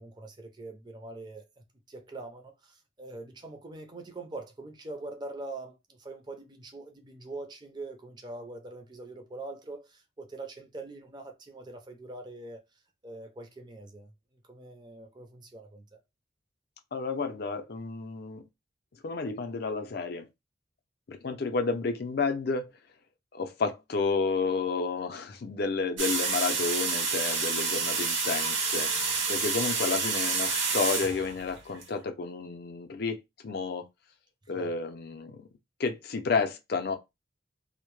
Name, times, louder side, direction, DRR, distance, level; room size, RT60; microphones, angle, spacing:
voice 1, 0.0-16.0 34.5-34.7, right 2 dB, 20° right, 0.4 m, -43 dB
voice 2, 16.9-18.5 19.0-20.3 21.1-22.7 23.3-33.9 34.5-35.5 35.8-37.0, left 4 dB, 50° left, 0.4 m, -31 dB
sound 1, 26.0-31.8, right 4 dB, 65° right, 0.7 m, -29 dB
2.1 x 2.1 x 3.0 m
head